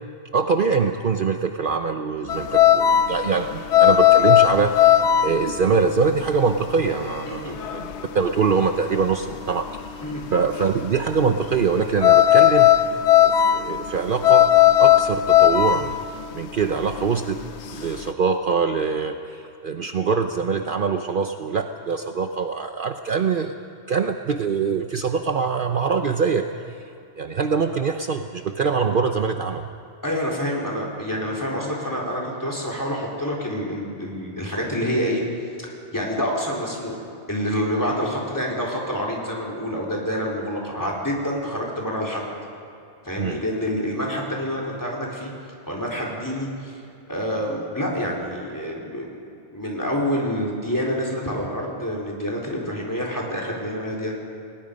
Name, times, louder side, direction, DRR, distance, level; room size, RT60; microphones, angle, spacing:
voice 1, 0.3-7.9 8.1-9.7 10.0-10.1 10.3-12.7 13.2-14.5 14.8-16.0 16.3-17.4 17.7-23.5 23.9-26.4 27.2-29.6 43.2-43.4, right 5 dB, 55° right, 6 dB, 0.9 m, -23 dB
sound 1, 2.3-9.4 9.7-18.1, left 11 dB, 75° left, 1.0 m, -18 dB
voice 2, 7.3-7.6 10.0-10.2 30.0-35.2 35.9-37.0 37.3-42.3 43.0-45.3 45.7-46.8 47.1-54.2, equal, 15° left, -2 dB, 3.9 m, -27 dB
29.5 x 19.0 x 5.2 m, 2.6 s
omnidirectional pair, 1.1 m